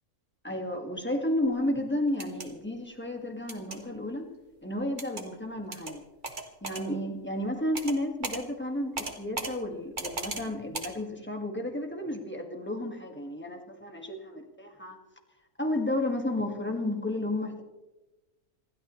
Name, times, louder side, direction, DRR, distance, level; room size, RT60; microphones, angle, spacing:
voice 1, 0.4-4.3 4.6-6.0 6.6-15.0 15.6-17.6, left 1 dB, 5° left, 3 dB, 1.8 m, -32 dB
sound 1, 2.1-2.5 3.5-3.8 5.0-5.2 5.7-5.9 6.2-6.8 7.7-8.0 8.2-8.4 9.0-9.5 10.0-10.4 10.7-10.9, right 3 dB, 30° right, 1.6 m, -36 dB
27.5 x 13.0 x 3.2 m, 1.1 s
omnidirectional pair, 1.6 m